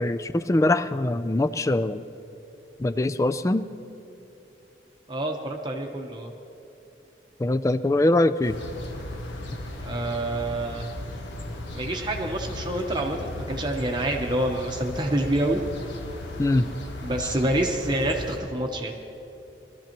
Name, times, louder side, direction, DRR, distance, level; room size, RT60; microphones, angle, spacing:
voice 1, 0.0-2.0 2.8-3.6 7.4-8.6 16.4-16.7, left 2 dB, 15° left, 12 dB, 0.3 m, -23 dB
voice 2, 5.1-6.3 9.8-10.9 11.7-15.6 17.0-18.9, right 1 dB, 25° right, 2 dB, 0.9 m, -27 dB
sound 1, 8.4-18.4, left 1 dB, 85° left, 1.2 m, -36 dB
21.0 x 13.5 x 3.0 m, 3.0 s
head